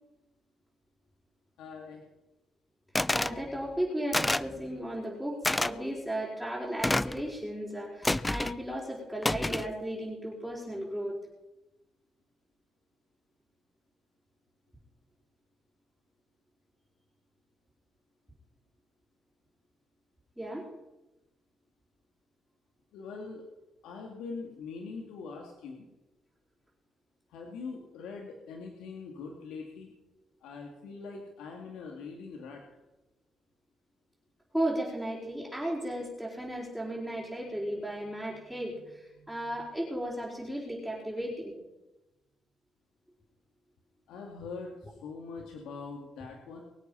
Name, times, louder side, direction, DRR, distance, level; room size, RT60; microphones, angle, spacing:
voice 1, 1.6-2.0 22.9-23.4 23.8-25.8 27.3-29.9 30.4-32.6 44.1-46.6, left 4 dB, 90° left, 1 dB, 2.3 m, -42 dB
sound 1, 3.0-3.4 4.1-4.5 5.4-5.7 6.8-7.2 8.0-8.6 9.2-9.7, left 2 dB, 15° left, 0.5 m, -28 dB
voice 2, 3.1-11.1 20.4-20.7 34.5-41.5, right 1 dB, 5° right, -6 dB, 4.8 m, -35 dB
23.5 x 8.3 x 5.6 m, 1.0 s
cardioid pair, 90°, 0 cm